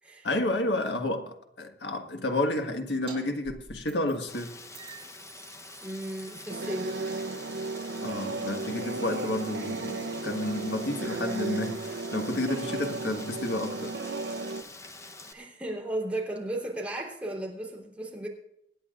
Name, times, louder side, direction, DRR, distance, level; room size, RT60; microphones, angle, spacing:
voice 1, 0.2-4.6 8.0-13.9, left 1 dB, 70° left, 1.5 m, -31 dB
sound 1, 3.1-3.2 3.4-4.4 4.7-9.8, right 5 dB, 30° right, 3.9 m, -52 dB
Rain, 4.3-15.3, left 3 dB, 15° left, 0.9 m, -46 dB
voice 2, 5.8-7.0 15.3-18.3, right 1 dB, 10° right, 3.6 m, -35 dB
sound 2, 6.5-14.6, right 3 dB, 90° right, 0.8 m, -34 dB
26.5 x 10.0 x 2.5 m
head